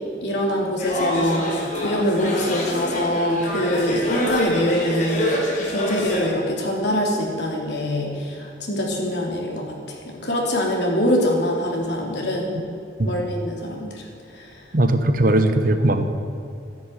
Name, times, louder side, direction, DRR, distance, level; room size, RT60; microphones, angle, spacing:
voice 1, 0.2-12.5 13.0-14.1 14.3-14.5, equal, 70° left, -1 dB, 3.4 m, -24 dB
sound 1, 0.8-6.3, left 1 dB, 45° left, 3.9 m, -27 dB
voice 2, 14.7-16.1, right 1 dB, 50° right, 8 dB, 1.2 m, -19 dB
14.5 x 10.5 x 9.2 m, 2.5 s
head